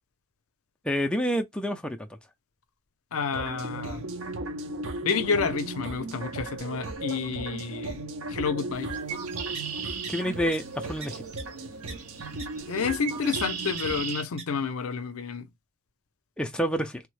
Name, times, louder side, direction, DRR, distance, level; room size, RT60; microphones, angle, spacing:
voice 1, 0.8-2.1 10.1-11.2 16.4-17.0, equal, 5° left, 0.3 m, -28 dB
voice 2, 3.1-4.0 5.0-8.0 8.3-8.9 12.7-15.5, left 5 dB, 75° left, 0.5 m, -29 dB
sound 1, 3.3-14.1, right 2 dB, 60° right, 0.6 m, -36 dB
Bird, 8.8-14.2, right 7 dB, 85° right, 0.9 m, -38 dB
sound 2, 9.5-9.6 10.0-10.1 10.5-10.6 11.0-11.1 11.4-11.5 11.9-12.0 12.4-12.5 13.8-13.9 14.4-14.5, right 4 dB, 30° right, 0.8 m, -39 dB
3.4 x 2.1 x 3.1 m
head